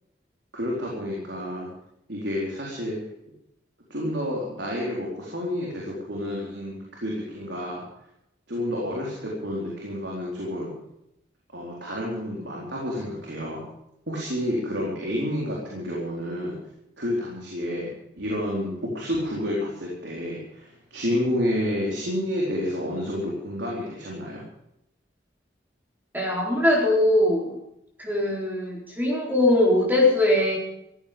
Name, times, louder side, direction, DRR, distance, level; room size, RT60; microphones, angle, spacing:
voice 1, 0.5-1.7 2.1-3.0 3.9-7.8 8.5-10.7 11.5-13.6 14.1-16.5 17.0-17.9 18.1-24.4, equal, 85° right, -3 dB, 4.3 m, -29 dB
voice 2, 26.1-27.6 28.0-30.6, left 1 dB, 10° right, -2 dB, 4.2 m, -21 dB
15.5 x 15.0 x 5.3 m, 0.81 s
head